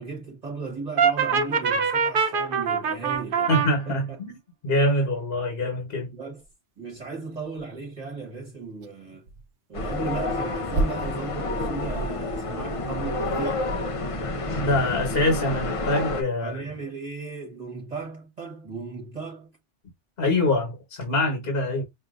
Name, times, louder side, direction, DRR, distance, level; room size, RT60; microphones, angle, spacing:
voice 1, 0.0-4.2 6.1-6.4 6.8-9.3 9.7-13.7 16.4-19.6, right 4 dB, 35° right, 1.3 m, -36 dB
Brass instrument, 1.0-3.7, right 6 dB, 50° right, 0.9 m, -23 dB
voice 2, 3.5-4.3 4.6-6.1 14.5-16.6 20.2-21.8, left 1 dB, 55° left, 1.4 m, -24 dB
sound 1, 6.4-6.5 7.0-7.1 7.5-8.0 8.7-8.9 9.3-9.5 10.1-13.8, right 2 dB, 80° right, 1.0 m, -33 dB
sound 2, 9.7-16.2, left 2 dB, 35° left, 0.6 m, -29 dB
5.6 x 2.6 x 2.4 m
omnidirectional pair, 1.2 m